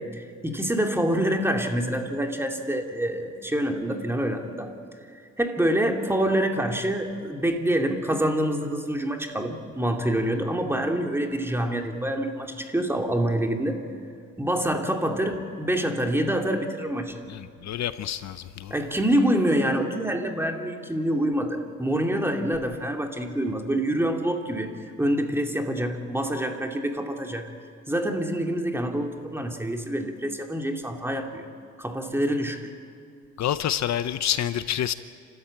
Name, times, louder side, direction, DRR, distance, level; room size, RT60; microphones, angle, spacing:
voice 1, 0.0-4.7 5.4-13.8 14.4-17.2 18.7-27.5 27.9-31.4 31.8-32.7, right 1 dB, 10° right, 2.4 m, -26 dB
voice 2, 17.3-18.7 33.4-34.9, left 10 dB, 65° left, 0.8 m, -28 dB
29.0 x 13.5 x 8.8 m
cardioid pair, 90°, 30 cm